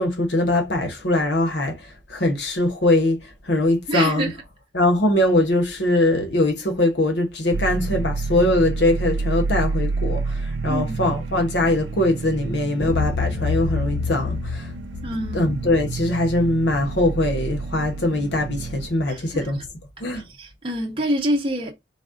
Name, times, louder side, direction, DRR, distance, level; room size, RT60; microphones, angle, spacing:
voice 1, 0.0-4.3 4.7-14.7 15.3-19.7 20.0-20.3, left 1 dB, 65° left, 1.1 m, -22 dB
voice 2, 3.9-4.3 10.7-11.0 15.0-15.5 19.1-19.5 20.1-21.7, right 1 dB, 30° right, 0.6 m, -26 dB
sound 1, 7.5-18.9, right 3 dB, 90° right, 0.5 m, -29 dB
sound 2, 12.8-19.7, left 6 dB, 50° left, 0.4 m, -31 dB
4.1 x 2.4 x 3.6 m
head